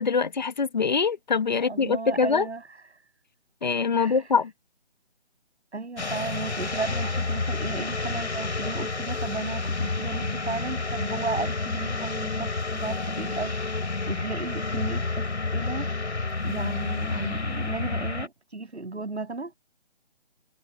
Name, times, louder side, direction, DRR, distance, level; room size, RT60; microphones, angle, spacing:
voice 1, 0.0-2.5 3.6-4.5, left 5 dB, 40° left, 1.8 m, -24 dB
voice 2, 1.5-2.8 4.0-4.4 5.7-13.7 14.1-15.9 16.4-19.5, right 3 dB, 75° right, 7.0 m, -35 dB
sound 1, 6.0-18.3, left 3 dB, 80° left, 5.4 m, -30 dB
figure-of-eight pair, 170°, 33 cm